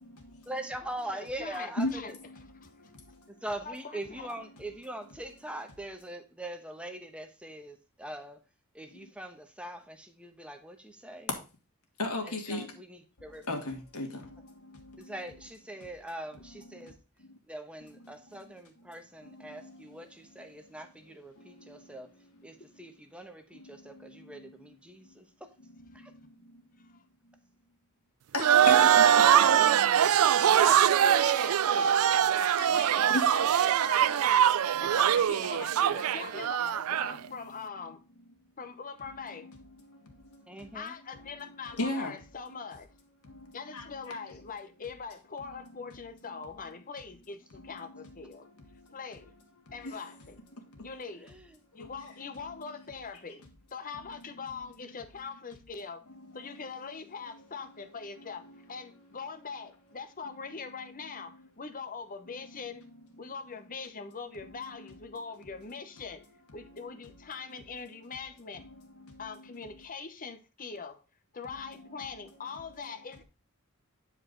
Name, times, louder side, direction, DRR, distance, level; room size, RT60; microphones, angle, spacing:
voice 1, 0.4-2.1 3.3-8.4 8.7-11.3 12.2-13.4 15.0-17.0 17.4-22.1 22.4-25.5 25.9-26.1 29.3-30.8 31.3-31.6 40.5-41.0 51.1-51.6, right 1 dB, 5° right, 1.1 m, -42 dB
voice 2, 1.1-2.2 2.6-2.9 3.6-4.3 26.8-27.0 29.9-30.1 30.7-34.3 34.7-38.0 38.6-39.5 40.7-42.9 43.5-48.5 48.9-49.3 49.7-50.4 50.8-51.3 51.7-53.4 53.7-56.1 56.3-62.8 63.2-66.3 66.5-68.7 69.2-71.0 71.3-73.2, left 5 dB, 40° left, 0.9 m, -42 dB
voice 3, 12.0-12.6 13.5-14.1 28.3-29.2 33.1-33.2 41.8-42.1 43.7-44.2, left 2 dB, 70° left, 2.3 m, -32 dB
sound 1, 28.4-37.2, right 9 dB, 70° right, 0.4 m, -23 dB
10.0 x 4.8 x 3.9 m
head